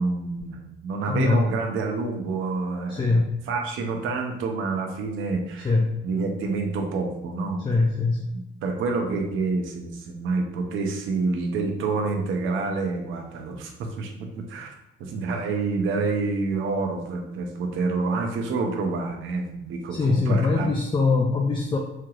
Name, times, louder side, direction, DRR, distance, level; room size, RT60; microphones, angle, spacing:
voice 1, 0.0-5.7 6.0-7.9 8.3-14.7 15.0-20.7, right 3 dB, 85° right, 3 dB, 0.7 m, -28 dB
voice 2, 1.1-1.4 2.9-3.3 5.6-5.9 7.6-8.4 19.9-21.8, left 3 dB, 25° left, 0 dB, 0.5 m, -22 dB
4.4 x 2.9 x 2.5 m, 0.87 s
cardioid pair, 90°, 20 cm